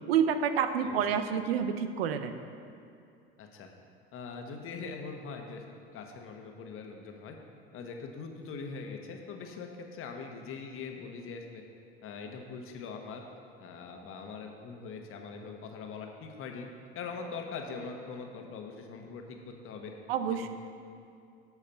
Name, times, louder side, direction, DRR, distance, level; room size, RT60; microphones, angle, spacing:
voice 1, 0.1-2.4 20.1-20.5, right 7 dB, 75° right, 9 dB, 0.7 m, -28 dB
voice 2, 3.4-3.7 4.1-5.6 5.9-7.4 7.7-11.6 12.0-13.2 13.6-16.7 16.9-19.9 20.3-20.5, left 5 dB, 45° left, 3 dB, 1.3 m, -42 dB
12.0 x 4.8 x 5.7 m, 2.5 s
hypercardioid pair, 80°, 30 cm